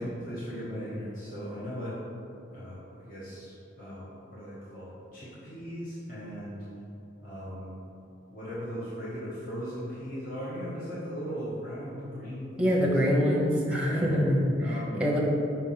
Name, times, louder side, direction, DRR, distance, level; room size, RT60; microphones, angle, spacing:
voice 1, 0.0-2.0 2.5-6.6 7.2-7.7 8.3-12.9 13.8-14.1 14.6-15.0, equal, 45° left, -10 dB, 1.3 m, -38 dB
voice 2, 12.6-15.2, equal, 5° right, -3 dB, 0.8 m, -25 dB
5.7 x 3.5 x 5.7 m, 2.8 s
head